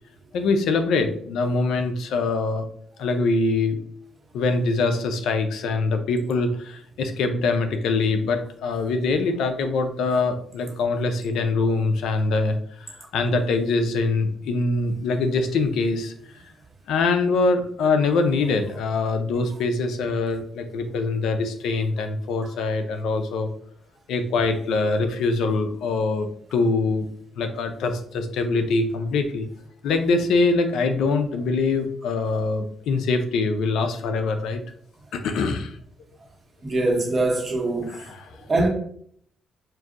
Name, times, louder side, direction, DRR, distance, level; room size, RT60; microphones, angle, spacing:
voice 1, 0.3-2.7 3.0-3.8 4.3-12.6 12.9-16.4 16.9-23.5 24.1-27.1 27.4-29.5 29.8-34.6 35.1-35.8 37.8-38.3, left 3 dB, 80° left, 0.5 m, -23 dB
voice 2, 36.6-37.9 38.5-38.7, right 2 dB, 30° right, 1.2 m, -22 dB
5.9 x 2.6 x 2.5 m
cardioid pair, 90°, 0 cm